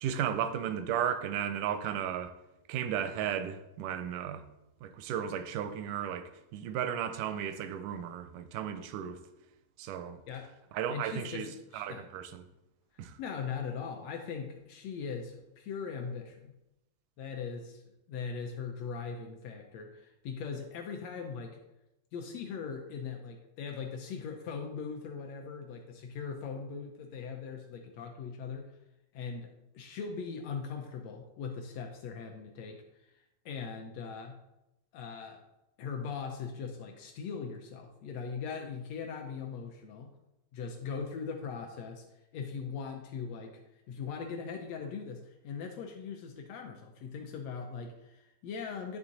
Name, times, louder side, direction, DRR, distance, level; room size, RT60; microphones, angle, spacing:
voice 1, 0.0-2.3 2.7-4.5 4.8-9.2 9.8-10.2 10.7-12.5 13.0-13.2, right 9 dB, 85° right, 2.1 m, -34 dB
voice 2, 10.9-12.1 12.9-16.5 17.2-17.8 18.1-21.6 22.1-28.7 29.1-32.8 33.4-34.4 34.9-35.4 35.8-40.1 40.5-42.0 42.3-43.6 43.9-49.0, left 6 dB, 80° left, 1.5 m, -40 dB
11.0 x 3.6 x 4.0 m
omnidirectional pair, 3.6 m